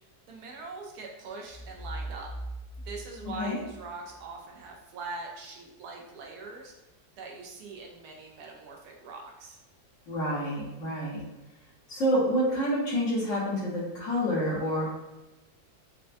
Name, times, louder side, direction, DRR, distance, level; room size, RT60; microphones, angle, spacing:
voice 1, 0.3-2.3 2.8-6.7 7.2-9.6, right 3 dB, 75° right, 0 dB, 1.1 m, -42 dB
sound 1, 1.5-4.3, right 1 dB, 55° right, 1.6 m, -41 dB
voice 2, 10.1-11.2 11.9-14.9, equal, 55° left, -6 dB, 1.2 m, -28 dB
4.4 x 2.2 x 2.5 m, 1.0 s
omnidirectional pair, 1.8 m